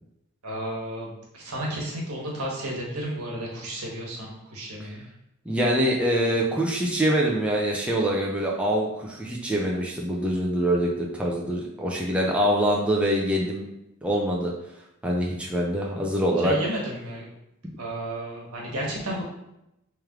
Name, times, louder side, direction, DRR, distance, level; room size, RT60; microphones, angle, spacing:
voice 1, 0.4-5.0 16.4-17.3 17.8-19.2, right 1 dB, 85° right, -3 dB, 1.2 m, -32 dB
voice 2, 5.5-13.6 14.0-14.5 15.0-16.6, equal, 5° right, -3 dB, 0.5 m, -24 dB
3.3 x 3.1 x 3.6 m, 0.85 s
head